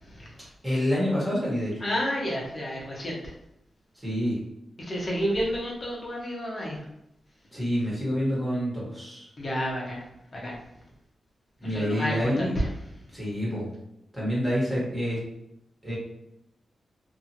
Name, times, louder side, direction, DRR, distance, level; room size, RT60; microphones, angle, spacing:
voice 1, 0.0-0.4 1.8-3.3 4.8-6.8 9.4-10.1 10.3-10.6 11.6-12.7, equal, 40° left, -2 dB, 0.9 m, -30 dB
voice 2, 0.6-1.7 4.0-4.4 7.5-9.3 11.6-12.6 13.1-13.7 14.1-15.2 15.8-16.0, equal, 10° right, -7 dB, 1.2 m, -27 dB
2.7 x 2.5 x 2.8 m, 0.81 s
wide cardioid pair, 120°, 0 cm